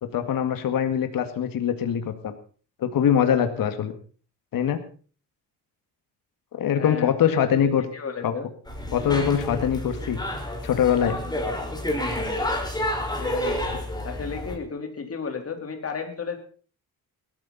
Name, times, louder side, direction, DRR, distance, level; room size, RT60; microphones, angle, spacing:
voice 1, 0.0-2.3 2.8-3.9 4.5-4.8 6.5-7.9 8.2-8.3 8.9-10.2 10.6-11.2, left 9 dB, 60° left, 8 dB, 2.0 m, -23 dB
voice 2, 6.7-8.5 13.1-13.6 14.0-16.4, left 5 dB, 40° left, 4 dB, 3.8 m, -34 dB
sound 1, 8.6-14.6, left 1 dB, 10° left, 5.1 m, -29 dB
19.5 x 13.5 x 4.1 m, 0.41 s
cardioid pair, 95°, 38 cm